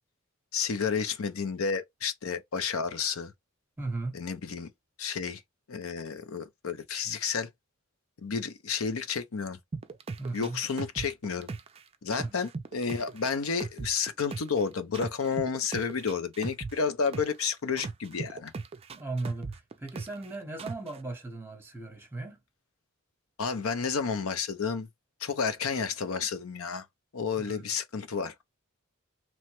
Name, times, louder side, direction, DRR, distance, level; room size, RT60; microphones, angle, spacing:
voice 1, 0.5-3.3 4.1-4.7 5.0-5.4 5.7-7.5 8.2-9.6 10.3-11.5 12.0-18.5 23.4-24.9 25.2-26.8 27.1-28.4, left 5 dB, 75° left, 0.6 m, -31 dB
voice 2, 3.8-4.2 10.2-10.6 12.2-12.3 18.9-22.4 27.4-27.7, right 2 dB, 10° right, 0.9 m, -37 dB
sound 1, 9.7-11.8 12.1-14.6 14.9-17.4 17.8-20.3 20.6-21.0, right 4 dB, 30° right, 0.3 m, -38 dB
3.0 x 2.1 x 2.9 m
head